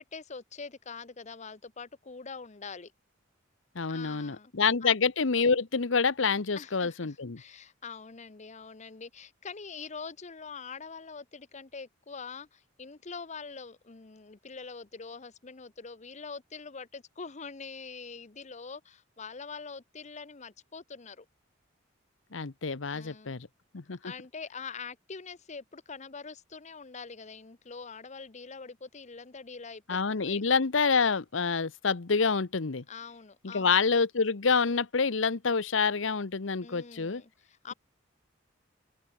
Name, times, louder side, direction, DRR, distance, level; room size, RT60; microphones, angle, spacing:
voice 1, 0.0-2.9 3.9-4.5 4.8-4.9 6.5-21.3 22.9-23.4 24.0-30.4 32.9-33.8 36.6-37.7, left 5 dB, 35° left, 0.8 m, -44 dB
voice 2, 3.7-7.4 22.3-23.5 23.7-24.0 29.9-32.8 33.4-37.2, left 5 dB, 75° left, 0.9 m, -27 dB
open air
head